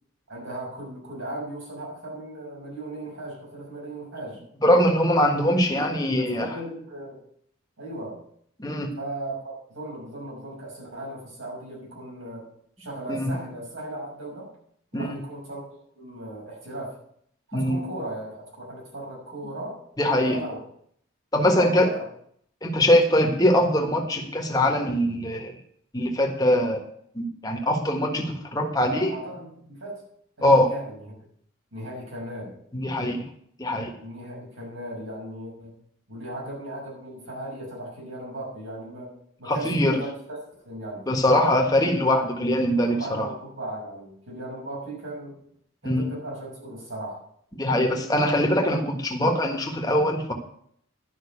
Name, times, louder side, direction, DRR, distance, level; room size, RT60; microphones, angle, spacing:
voice 1, 0.3-4.4 5.7-7.2 7.8-8.2 9.0-12.5 12.8-14.5 14.9-15.6 15.9-17.0 17.5-19.8 20.2-20.6 21.5-22.0 28.9-30.0 30.4-31.1 31.7-32.6 34.0-35.8 36.1-39.1 39.4-40.1 40.6-41.1 42.1-45.3 45.8-47.2, right 1 dB, 75° right, -4 dB, 6.3 m, -37 dB
voice 2, 4.6-6.5 8.6-8.9 13.1-13.3 14.9-15.1 17.5-17.8 20.0-20.4 21.3-21.9 22.6-25.5 25.9-26.8 27.1-29.1 30.4-30.7 32.7-33.2 33.6-33.9 39.5-40.0 41.1-43.3 45.8-46.0 47.6-50.3, left 1 dB, 20° left, 2 dB, 1.5 m, -22 dB
11.0 x 5.8 x 8.5 m, 0.67 s
head